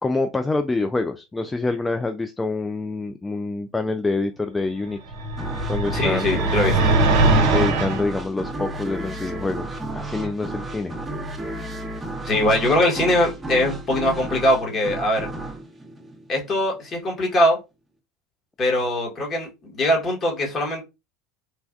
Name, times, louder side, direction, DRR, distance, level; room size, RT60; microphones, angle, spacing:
voice 1, 0.0-5.0 5.7-6.5 7.5-10.9, left 3 dB, 15° left, 0.3 m, -26 dB
sound 1, 5.1-8.0, right 2 dB, 65° right, 0.6 m, -20 dB
sound 2, 5.4-16.8, right 2 dB, 20° right, 0.9 m, -33 dB
voice 2, 5.9-7.0 12.2-15.3 16.3-17.6 18.6-20.8, left 1 dB, 40° left, 1.4 m, -22 dB
3.2 x 2.2 x 2.5 m
hypercardioid pair, 75°, 0 cm